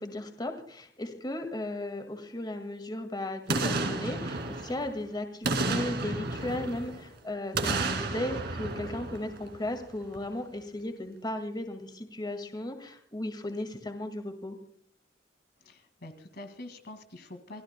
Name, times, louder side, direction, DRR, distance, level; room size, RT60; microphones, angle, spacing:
voice 1, 0.0-14.6, left 1 dB, 25° left, 6 dB, 1.9 m, -36 dB
Boom, 3.5-5.0 5.4-7.1 7.5-9.8 10.2-10.3, right 3 dB, 60° right, 2.4 m, -32 dB
voice 2, 15.6-17.6, left 1 dB, 55° left, 7 dB, 2.1 m, -45 dB
27.0 x 16.5 x 2.2 m, 0.62 s
head